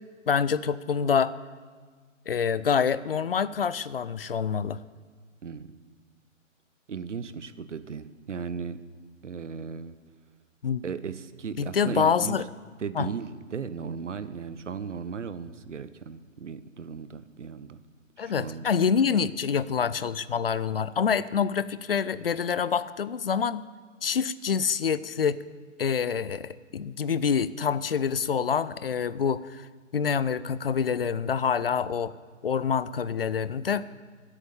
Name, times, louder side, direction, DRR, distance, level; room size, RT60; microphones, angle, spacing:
voice 1, 0.3-1.3 2.3-4.8 10.6-10.8 11.6-12.5 12.9-13.1 18.2-23.6 24.0-25.4 25.8-29.7 29.9-32.1 32.4-33.8, left 7 dB, 50° left, 17 dB, 0.5 m, -26 dB
voice 2, 5.4-5.8 6.9-8.8 9.2-9.9 10.8-12.4 12.8-17.8 18.2-18.7, right 6 dB, 65° right, 13 dB, 0.9 m, -36 dB
15.5 x 8.3 x 7.1 m, 1.5 s
figure-of-eight pair, 135°, 39 cm